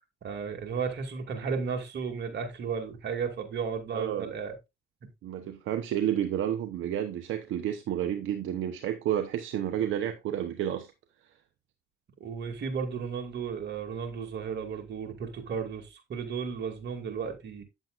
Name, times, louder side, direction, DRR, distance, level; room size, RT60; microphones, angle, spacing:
voice 1, 0.2-4.5 12.2-17.6, right 6 dB, 60° right, 2.3 m, -34 dB
voice 2, 3.9-4.3 5.2-10.9, right 10 dB, 80° right, 0.9 m, -30 dB
9.1 x 7.6 x 2.4 m
cardioid pair, 90°, 20 cm